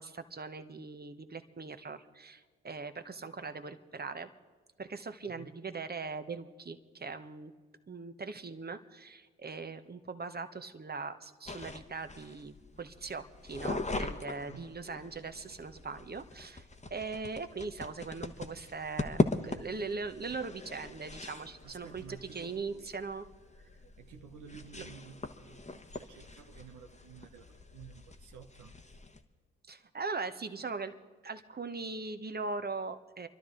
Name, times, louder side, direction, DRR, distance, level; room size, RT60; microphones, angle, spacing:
voice 1, 0.0-4.3 4.8-7.5 7.9-16.6 16.9-23.2 24.8-24.9 29.7-30.9 31.2-33.3, right 4 dB, 30° right, 9 dB, 1.1 m, -40 dB
voice 2, 5.3-5.7 14.4-14.9 21.6-22.9 24.0-28.8, right 7 dB, 65° right, 5 dB, 1.0 m, -53 dB
sound 1, 11.5-29.2, left 3 dB, 20° left, 1.3 m, -40 dB
28.5 x 12.0 x 3.9 m, 1.4 s
hypercardioid pair, 40°, 32 cm